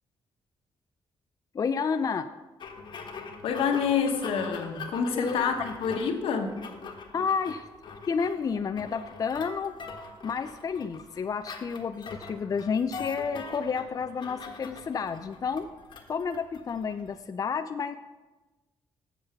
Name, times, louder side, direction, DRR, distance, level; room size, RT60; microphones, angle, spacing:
voice 1, 1.5-2.3 5.1-5.7 7.1-7.7 8.1-9.8 10.2-15.7 16.1-17.9, left 5 dB, 40° left, 9 dB, 0.4 m, -30 dB
sound 1, 2.6-17.2, left 4 dB, 55° left, 1.3 m, -43 dB
voice 2, 3.4-6.6, left 6 dB, 80° left, 5 dB, 1.2 m, -27 dB
7.7 x 6.9 x 5.8 m, 1.2 s
cardioid pair, 80°, 9 cm